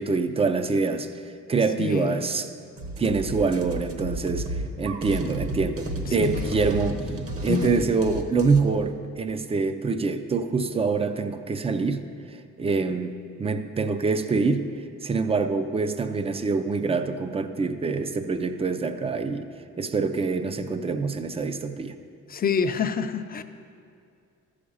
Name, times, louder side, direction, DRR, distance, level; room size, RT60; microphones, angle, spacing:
voice 1, 0.0-2.5 3.0-7.0 7.4-12.0 12.3-14.7 15.0-19.5 19.8-21.9, right 4 dB, 20° right, 9 dB, 0.5 m, -25 dB
voice 2, 1.8-2.3 6.1-6.7 7.5-7.7 22.3-23.4, left 6 dB, 30° left, 8 dB, 0.5 m, -27 dB
sound 1, 2.8-8.6, right 1 dB, 45° right, 1.1 m, -32 dB
14.0 x 5.0 x 7.0 m, 2.4 s
cardioid pair, 130°, 30 cm